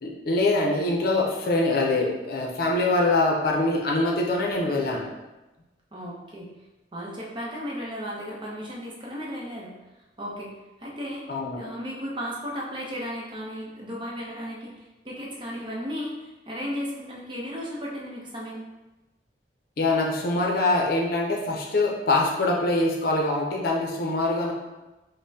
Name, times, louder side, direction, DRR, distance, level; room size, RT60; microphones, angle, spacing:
voice 1, 0.0-5.1 11.3-11.6 19.8-24.5, left 2 dB, 55° left, -1 dB, 0.6 m, -24 dB
voice 2, 5.9-6.5 6.9-9.7 10.2-10.5 10.8-11.2 11.6-18.6, equal, 30° right, -4 dB, 0.7 m, -35 dB
5.2 x 2.1 x 2.7 m, 1.1 s
head